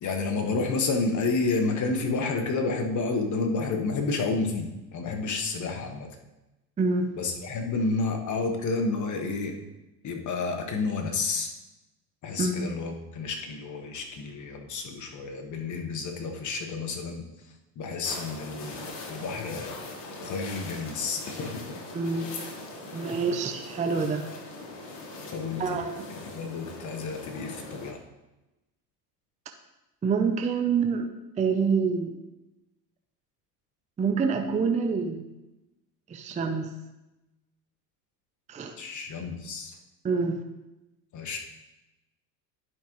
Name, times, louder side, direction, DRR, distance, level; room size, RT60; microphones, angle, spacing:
voice 1, 0.0-6.2 7.1-9.5 10.0-11.5 12.2-17.2 17.8-19.7 20.0-21.7 25.3-25.8 26.1-28.0 38.8-39.7 41.1-41.4, left 3 dB, 35° left, 4 dB, 1.4 m, -30 dB
voice 2, 6.8-7.1 12.4-12.5 21.9-22.3 22.9-24.2 25.6-26.1 30.0-31.1 31.4-32.2 34.0-35.2 36.1-36.7 38.5-38.7 40.0-40.4, right 5 dB, 15° right, 5 dB, 0.6 m, -26 dB
sound 1, 18.0-27.9, left 2 dB, 55° left, 1.9 m, -41 dB
10.5 x 5.2 x 3.2 m, 0.99 s
hypercardioid pair, 95°, 50 cm